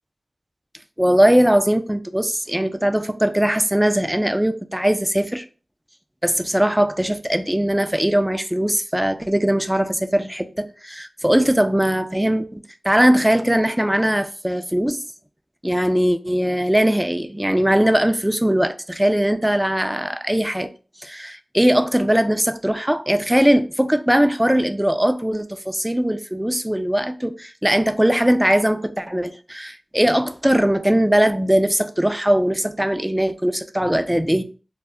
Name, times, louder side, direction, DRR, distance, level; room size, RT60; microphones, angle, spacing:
voice 1, 1.0-5.4 6.2-15.0 15.6-20.7 21.0-34.4, equal, 10° right, 0.3 m, -20 dB
2.1 x 2.0 x 3.5 m
cardioid pair, 45°, 0 cm